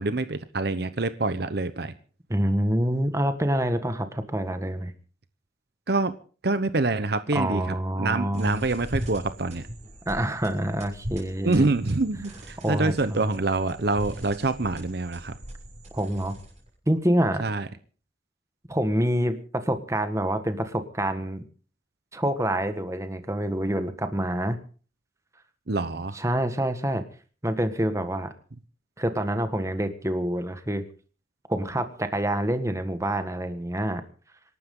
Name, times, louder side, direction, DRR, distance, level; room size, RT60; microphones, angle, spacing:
voice 1, 0.0-1.9 5.9-6.1 6.4-9.6 11.4-15.4 17.4-17.7 25.7-26.2, right 3 dB, 60° right, 12 dB, 0.9 m, -26 dB
voice 2, 2.3-4.9 7.3-8.7 10.0-11.7 12.6-13.2 15.9-16.4 16.9-17.4 18.7-21.4 22.1-24.6 26.1-27.0 27.4-28.3 29.0-30.8 31.5-34.0, right 1 dB, 15° right, 8 dB, 1.5 m, -26 dB
sound 1, 8.3-16.7, equal, 40° right, 6.7 m, -40 dB
27.0 x 12.0 x 3.8 m, 0.40 s
head